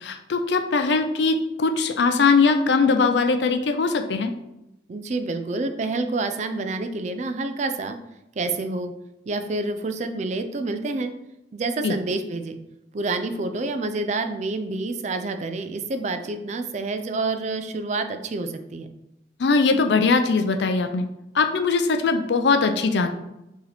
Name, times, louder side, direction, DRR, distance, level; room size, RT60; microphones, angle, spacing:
voice 1, 0.0-4.3 11.8-11.9 19.4-21.1 21.3-23.1, left 4 dB, 80° left, 7 dB, 0.5 m, -21 dB
voice 2, 4.9-8.0 8.4-8.9 9.3-11.1 11.5-12.6 12.9-18.9, right 3 dB, 40° right, 8 dB, 0.4 m, -28 dB
4.6 x 2.9 x 3.4 m, 0.89 s
head